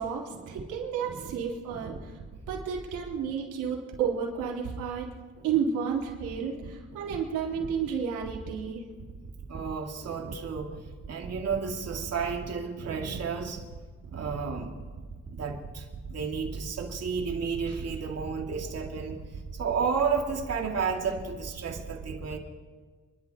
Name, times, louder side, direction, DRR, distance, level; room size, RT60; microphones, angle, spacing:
voice 1, 0.0-2.1 2.5-5.1 5.4-8.8, right 7 dB, 90° right, -2 dB, 3.8 m, -31 dB
voice 2, 9.5-10.7 11.1-13.6 14.1-14.8 15.3-19.2 19.5-22.4, right 5 dB, 55° right, 2 dB, 2.5 m, -32 dB
28.5 x 12.0 x 3.0 m, 1.5 s
cardioid pair, 90°, 30 cm